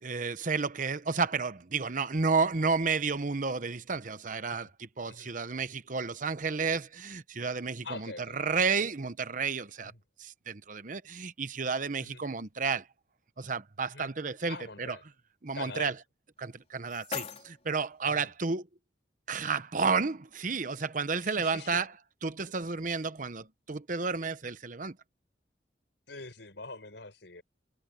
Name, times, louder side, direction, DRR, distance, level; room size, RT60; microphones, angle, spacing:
voice 1, 0.0-9.9 10.2-12.9 13.4-15.0 15.4-15.9 16.4-18.7 19.3-21.9 22.2-25.0, right 4 dB, 45° right, 0.9 m, -31 dB
voice 2, 7.8-8.4 9.8-10.0 12.0-12.2 13.9-14.1 14.5-15.0 15.5-15.9 18.0-18.3 21.2-21.8 26.1-27.4, left 3 dB, 80° left, 4.9 m, -44 dB
sound 1, 16.4-18.4, left 6 dB, 40° left, 4.3 m, -42 dB
head